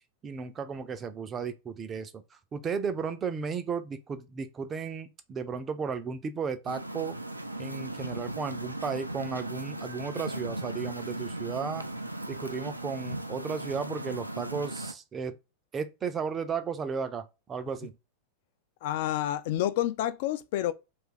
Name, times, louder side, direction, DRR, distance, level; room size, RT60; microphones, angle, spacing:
voice 1, 0.2-7.2 7.6-11.8 12.3-15.4 15.7-18.0, right 5 dB, 25° right, 0.4 m, -34 dB
sound 1, 6.7-14.9, right 1 dB, 85° right, 0.3 m, -37 dB
voice 2, 18.8-20.7, left 12 dB, 50° left, 0.3 m, -29 dB
2.6 x 2.4 x 3.7 m
figure-of-eight pair, 90°, 0 cm